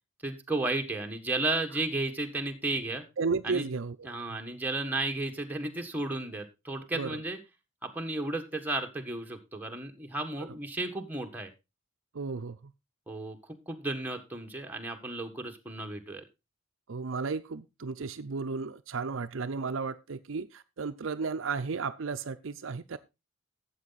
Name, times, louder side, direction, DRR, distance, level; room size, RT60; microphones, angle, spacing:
voice 1, 0.2-3.0 3.4-3.7 4.0-7.4 7.8-11.5 13.1-13.4 13.7-16.2, right 2 dB, 10° right, 1.6 m, -33 dB
voice 2, 3.2-4.0 6.9-7.2 12.1-12.6 16.9-23.0, right 4 dB, 65° right, 0.6 m, -33 dB
12.5 x 8.1 x 4.1 m
head